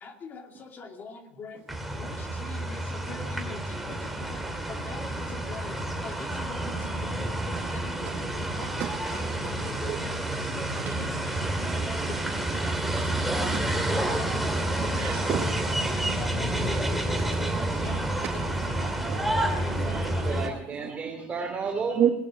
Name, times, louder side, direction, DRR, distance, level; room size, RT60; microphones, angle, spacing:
voice 1, 0.0-1.6 2.0-3.6 3.9-4.4 4.7-5.8 6.0-8.7 9.2-10.2 10.5-14.4 14.8-15.5 15.9-18.0 18.3-19.2 19.6-19.9, left 4 dB, 35° left, 2.6 m, -43 dB
sound 1, 1.7-20.5, right 1 dB, 5° right, 2.7 m, -29 dB
voice 2, 8.6-10.0 10.9-11.0 11.7-20.2 22.0-22.1, right 9 dB, 50° right, 1.9 m, -35 dB
voice 3, 19.7-22.0, right 4 dB, 25° right, 3.2 m, -33 dB
19.0 x 10.5 x 6.4 m
supercardioid pair, 115°, 5 cm